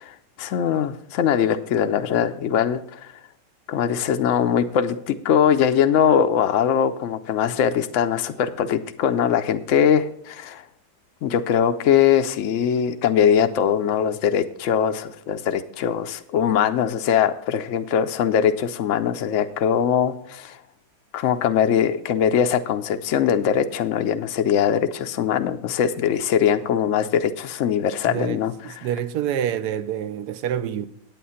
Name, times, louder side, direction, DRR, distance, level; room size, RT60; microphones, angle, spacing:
voice 1, 0.0-3.1 3.7-10.6 11.2-20.6 21.1-28.8, left 8 dB, 70° left, 0.7 m, -21 dB
voice 2, 28.1-30.9, right 9 dB, 75° right, 1.2 m, -27 dB
9.2 x 8.5 x 5.6 m
omnidirectional pair, 1.8 m